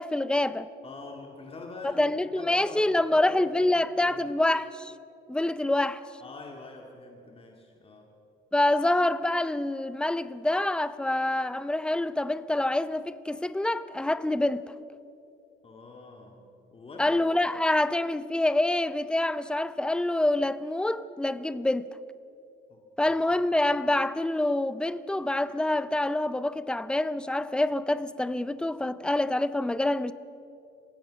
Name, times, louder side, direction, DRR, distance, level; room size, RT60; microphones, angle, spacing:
voice 1, 0.0-0.7 1.8-4.9 5.3-6.0 8.5-14.7 17.0-21.9 23.0-30.1, left 1 dB, 5° left, 0.6 m, -26 dB
voice 2, 0.8-4.3 6.2-8.1 15.6-17.2 22.7-23.1, left 3 dB, 30° left, 2.2 m, -45 dB
27.5 x 16.0 x 6.3 m
cardioid pair, 140°, 20 cm